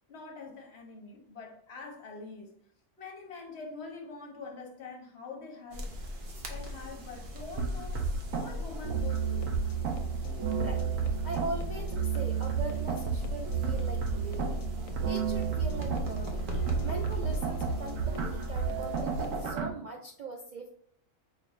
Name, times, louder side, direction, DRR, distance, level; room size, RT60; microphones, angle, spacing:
voice 1, 0.1-2.5 3.0-5.9 6.5-8.1 8.4-9.5, left 4 dB, 55° left, 1.1 m, -45 dB
sound 1, 5.7-19.5, left 1 dB, 50° right, 0.7 m, -40 dB
sound 2, 7.6-19.7, right 6 dB, 70° right, 1.1 m, -32 dB
sound 3, 9.0-19.4, left 5 dB, 75° left, 1.0 m, -49 dB
voice 2, 11.2-14.7 15.0-16.5 16.8-20.7, right 3 dB, 90° right, 0.3 m, -40 dB
5.2 x 2.5 x 3.1 m
omnidirectional pair, 1.4 m